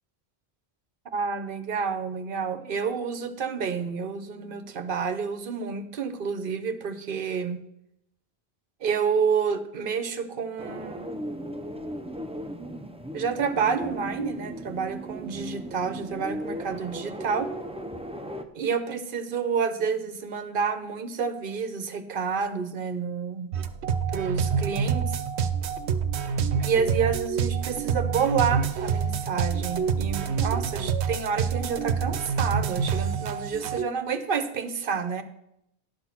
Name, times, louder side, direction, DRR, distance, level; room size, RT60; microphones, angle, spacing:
voice 1, 1.1-7.6 8.8-11.2 13.1-17.5 18.5-23.5 24.1-25.2 26.6-35.2, right 6 dB, 55° right, 10 dB, 0.9 m, -29 dB
Windy Window, 10.6-18.4, right 1 dB, 10° right, 0.4 m, -36 dB
sound 1, 23.5-33.8, right 6 dB, 80° right, 0.9 m, -27 dB
10.5 x 6.1 x 5.9 m, 0.81 s
omnidirectional pair, 1.1 m